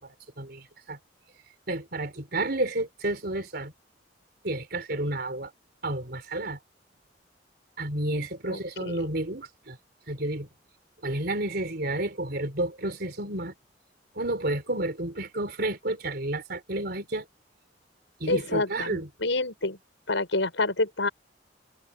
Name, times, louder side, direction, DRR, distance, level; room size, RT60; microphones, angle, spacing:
voice 1, 0.0-1.0 1.7-3.7 4.4-5.5 5.8-6.6 7.8-9.8 10.1-10.5 11.0-13.5 14.2-17.3 18.2-19.1, right 1 dB, 55° right, 3.9 m, -31 dB
voice 2, 8.5-9.1 18.3-19.8 20.1-21.1, left 2 dB, 85° left, 6.5 m, -28 dB
head